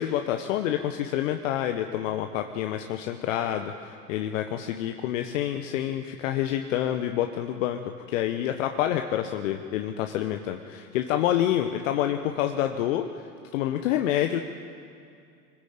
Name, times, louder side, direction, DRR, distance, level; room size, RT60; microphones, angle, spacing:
voice 1, 0.0-7.8 8.1-13.3 13.5-14.4, left 11 dB, 55° left, 6 dB, 1.2 m, -27 dB
25.0 x 15.0 x 8.5 m, 2.4 s
figure-of-eight pair, 90°, 45 cm